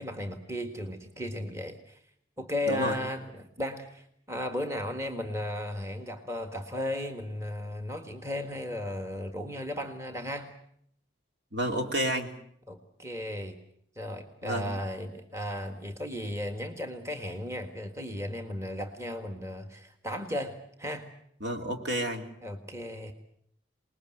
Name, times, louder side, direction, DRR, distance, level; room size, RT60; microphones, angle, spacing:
voice 1, 0.0-2.0 2.4-10.5 12.7-13.5 13.9-21.1 22.4-23.1, left 1 dB, 15° right, 6 dB, 1.7 m, -35 dB
voice 2, 2.7-3.0 11.5-12.3 14.4-14.7 21.4-22.3, right 1 dB, 65° right, 4 dB, 3.0 m, -30 dB
26.5 x 20.0 x 7.8 m, 0.68 s
head